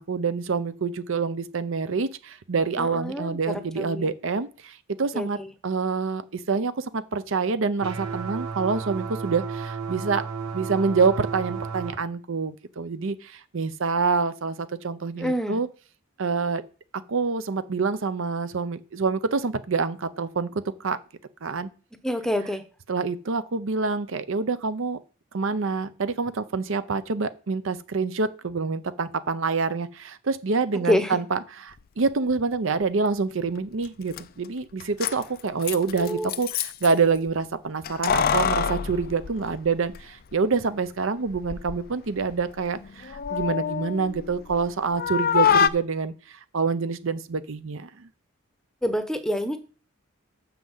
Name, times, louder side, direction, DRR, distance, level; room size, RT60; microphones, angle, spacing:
voice 1, 0.0-5.4 5.6-10.2 10.5-15.7 16.2-16.6 17.1-21.0 21.4-21.7 22.9-25.0 25.3-48.1, right 4 dB, 60° right, 13 dB, 0.6 m, -26 dB
voice 2, 2.8-3.4 3.8-4.1 5.1-5.3 15.2-15.6 22.0-22.6 30.9-31.2 36.0-36.3 48.8-49.6, equal, 5° left, 9 dB, 0.8 m, -26 dB
sound 1, 7.8-11.9, right 5 dB, 90° right, 1.5 m, -33 dB
Keys jangling, 33.8-33.9 34.1-34.2 34.8-36.9 37.8-40.0 40.3-40.4 41.3-41.8 42.2-44.7 45.0-45.7, left 7 dB, 45° left, 0.4 m, -25 dB
6.4 x 5.8 x 7.2 m, 0.37 s
head